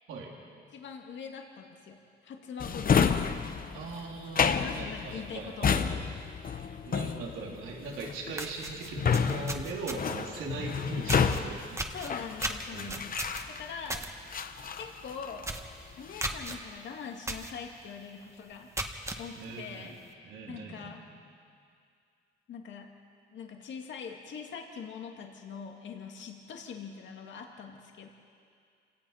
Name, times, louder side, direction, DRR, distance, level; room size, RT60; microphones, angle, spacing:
voice 1, 0.7-3.4 4.4-6.1 11.9-13.2 13.5-14.1 14.8-15.5 16.0-18.7 19.2-21.0 22.5-22.9 23.3-28.1, left 6 dB, 70° left, 2 dB, 2.2 m, -43 dB
Drawer open or close, 2.6-13.9 14.3-15.6 15.9-16.4, left 6 dB, 45° left, 1.1 m, -30 dB
voice 2, 3.7-6.0 6.8-11.9 12.7-13.0 19.3-19.9 20.2-21.0, right 4 dB, 85° right, -1 dB, 3.4 m, -40 dB
sound 1, 7.9-8.0 8.3-10.3 11.1-11.4 11.8-14.1 14.5-14.7 15.0-15.1 15.4-15.7 16.2-16.6 17.3-17.5 18.0-18.1 18.6-19.2, right 2 dB, 15° right, 1.7 m, -35 dB
28.0 x 18.0 x 5.7 m, 2.3 s
cardioid pair, 90°, 20 cm